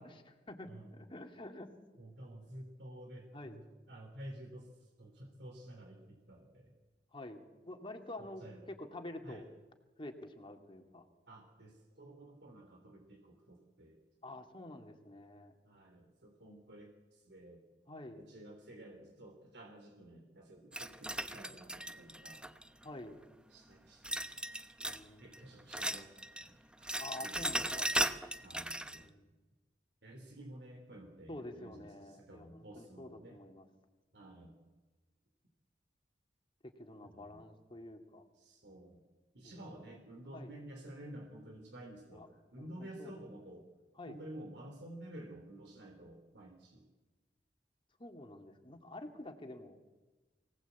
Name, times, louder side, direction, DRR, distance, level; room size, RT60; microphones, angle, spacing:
voice 1, 0.0-1.7 2.5-2.6 3.3-3.6 7.1-9.4 10.0-11.0 14.2-15.5 17.9-18.2 22.8-23.2 24.8-25.3 27.0-27.9 29.0-29.3 31.3-33.7 36.6-38.2 39.4-40.0 40.3-40.6 42.1-42.3 42.6-43.4 44.0-44.2 48.0-49.8, left 1 dB, 30° left, 4 dB, 2.5 m, -48 dB
voice 2, 0.7-1.0 2.0-4.7 5.0-6.7 8.2-8.7 9.2-9.4 11.3-14.0 15.6-17.6 18.2-22.5 23.5-24.2 25.2-26.9 27.2-27.7 28.4-29.1 30.0-33.4 34.1-34.6 37.1-37.4 38.4-39.0 39.3-43.7 44.1-46.9, right 1 dB, 70° right, 1 dB, 3.7 m, -52 dB
sound 1, 20.7-22.8 24.0-25.1 25.3-26.5 26.7-29.0, right 1 dB, 5° right, 0.9 m, -37 dB
23.5 x 18.5 x 8.4 m, 1.2 s
head